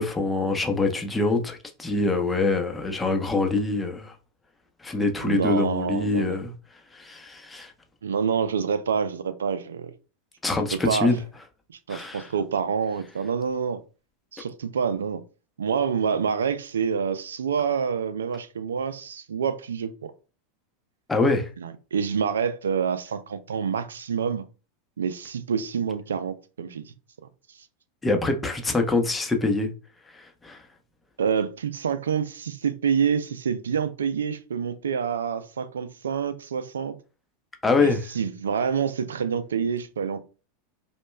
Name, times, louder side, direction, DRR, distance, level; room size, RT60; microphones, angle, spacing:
voice 1, 0.0-4.1 4.8-6.5 6.9-7.7 10.4-11.2 11.9-12.3 21.1-21.5 28.0-29.7 30.1-30.6 37.6-38.0, left 3 dB, 15° left, 0.7 m, -24 dB
voice 2, 5.2-6.4 8.0-9.9 10.7-11.1 11.7-13.8 14.3-15.2 15.6-20.1 21.6-24.4 25.0-26.9 31.2-37.0 37.8-40.2, right 6 dB, 90° right, 0.4 m, -27 dB
5.0 x 2.2 x 2.2 m
hypercardioid pair, 100°, 0 cm